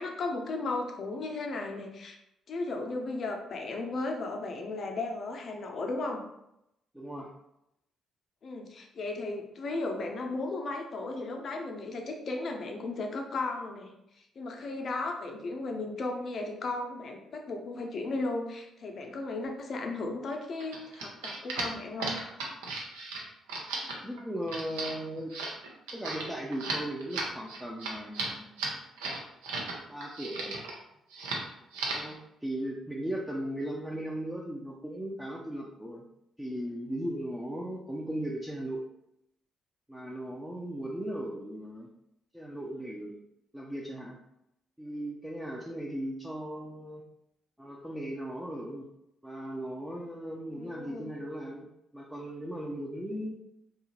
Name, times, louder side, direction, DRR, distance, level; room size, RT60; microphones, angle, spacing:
voice 1, 0.0-2.2 2.5-6.2 8.4-13.9 14.2-22.2 50.5-51.1, left 2 dB, 50° left, 2 dB, 0.5 m, -35 dB
voice 2, 6.9-7.3 24.0-25.4 25.9-28.5 29.9-30.6 31.9-36.0 36.4-38.8 39.9-41.9 42.3-43.1 43.5-44.2 44.8-47.0 47.6-48.9 49.2-51.7 51.9-53.3, right 1 dB, 5° right, -3 dB, 0.5 m, -37 dB
sound 1, 20.6-29.7 30.0-30.8 31.1-31.4 31.7-32.1, right 3 dB, 75° right, 0.5 m, -36 dB
2.7 x 2.3 x 2.9 m, 0.82 s
figure-of-eight pair, 45°, 0 cm